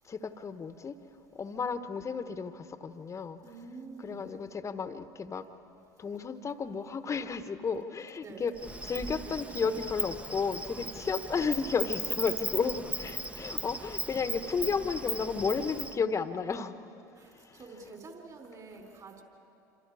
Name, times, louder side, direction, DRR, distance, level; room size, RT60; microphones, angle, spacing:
voice 1, 0.1-0.9 1.3-3.4 4.0-5.5 6.0-8.5 8.8-16.8 17.4-17.6, left 5 dB, 30° left, 10 dB, 1.2 m, -33 dB
voice 2, 3.4-4.3 8.2-8.6 13.2-13.3 17.2-19.2, right 3 dB, 40° right, 2 dB, 4.2 m, -48 dB
Insect, 8.6-16.0, right 2 dB, 10° right, 1.0 m, -37 dB
27.5 x 26.5 x 4.9 m, 2.7 s
hypercardioid pair, 75°, 10 cm